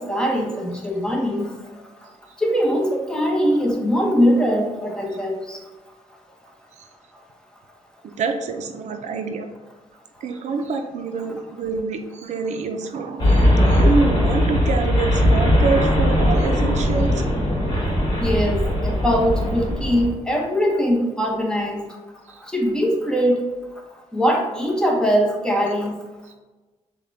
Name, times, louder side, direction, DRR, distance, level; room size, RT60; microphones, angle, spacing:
voice 1, 0.0-1.5 2.4-5.6 18.2-21.9 22.4-23.4 24.1-26.0, equal, 5° left, 0 dB, 0.8 m, -21 dB
voice 2, 8.2-9.5 10.2-17.2 22.3-22.4 26.3-26.4, right 4 dB, 70° right, 6 dB, 0.4 m, -26 dB
sound 1, 13.2-20.1, left 1 dB, 35° left, 1.2 m, -19 dB
6.4 x 2.2 x 2.6 m, 1.2 s
cardioid pair, 110°, 12 cm